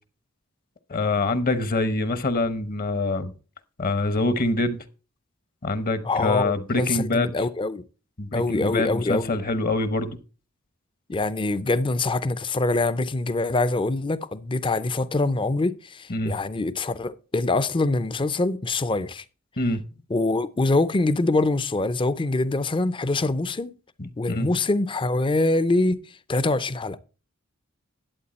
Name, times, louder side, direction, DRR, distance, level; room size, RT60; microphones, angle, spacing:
voice 1, 0.9-3.3 3.8-4.8 5.6-7.3 8.2-10.2 16.1-16.3 19.6-19.8 24.0-24.5, left 2 dB, 45° left, 0.9 m, -25 dB
voice 2, 6.0-7.8 8.3-9.3 11.1-19.2 20.1-23.7 24.2-26.0 26.3-27.0, left 2 dB, 25° left, 0.5 m, -24 dB
11.5 x 8.1 x 4.2 m
head